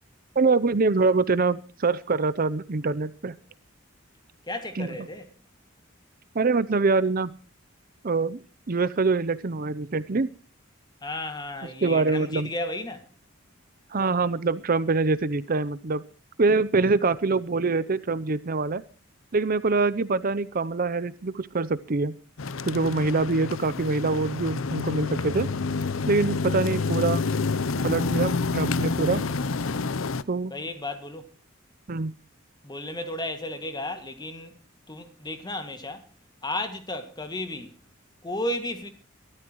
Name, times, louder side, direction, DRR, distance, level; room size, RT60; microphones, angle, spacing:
voice 1, 0.4-3.3 4.8-4.9 6.3-7.3 8.0-8.4 8.7-10.3 11.8-12.5 13.9-16.0 16.4-18.8 19.3-22.2 22.6-25.5 26.1-27.2 27.8-29.2 30.3-30.5 31.9-32.1, right 3 dB, 45° right, 0.6 m, -24 dB
voice 2, 4.4-5.3 11.0-13.1 30.5-31.4 32.6-34.6 34.9-36.0 36.4-37.7 38.2-38.9, left 1 dB, 20° left, 2.0 m, -33 dB
sound 1, 22.4-30.2, left 4 dB, 85° left, 0.7 m, -28 dB
23.0 x 13.5 x 3.1 m
head